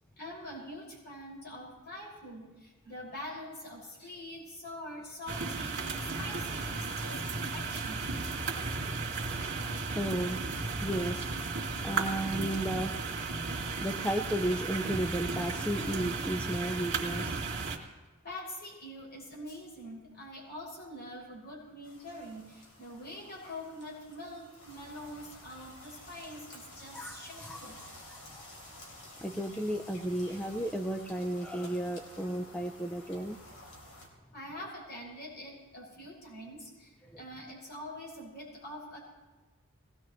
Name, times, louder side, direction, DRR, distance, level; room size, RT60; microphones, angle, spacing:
voice 1, 0.2-8.1 18.2-27.9 34.3-39.0, left 1 dB, 50° left, -4 dB, 6.3 m, -45 dB
sound 1, 5.3-17.8, right 4 dB, 60° right, 2.4 m, -35 dB
voice 2, 9.9-10.4 10.8-11.3 11.8-13.1 13.8-17.4 26.9-28.4 28.7-28.8 29.2-33.4 37.0-37.2, right 1 dB, 5° left, 4 dB, 0.6 m, -34 dB
sound 2, 21.8-34.1, left 1 dB, 75° left, 3.7 m, -52 dB
21.0 x 18.0 x 3.2 m, 1.2 s
head